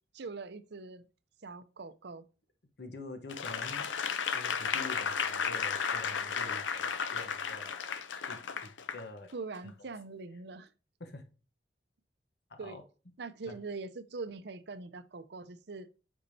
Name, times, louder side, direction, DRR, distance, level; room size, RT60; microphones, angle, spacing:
voice 1, 0.1-1.0 1.4-2.3 9.3-10.7 12.6-12.8 13.2-15.9, right 3 dB, 60° right, 0.6 m, -42 dB
voice 2, 2.8-3.9 4.3-8.0 8.3-9.3 9.6-9.9 11.0-11.3 12.5-12.8 13.5-13.6, left 2 dB, 60° left, 1.0 m, -47 dB
Applause / Crowd, 3.3-9.0 9.5-9.7, left 6 dB, 85° left, 0.6 m, -34 dB
8.3 x 5.3 x 2.7 m
head